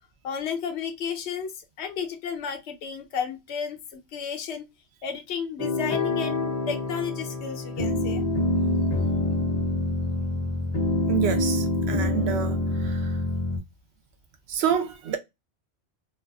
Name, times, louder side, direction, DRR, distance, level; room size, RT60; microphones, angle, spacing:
voice 1, 0.2-4.7 5.0-8.3, left 7 dB, 80° left, 0.9 m, -33 dB
sound 1, 5.6-13.6, left 2 dB, 45° left, 0.6 m, -26 dB
voice 2, 11.1-13.0 14.5-15.2, right 8 dB, 70° right, 0.8 m, -28 dB
2.4 x 2.3 x 2.3 m
omnidirectional pair, 1.1 m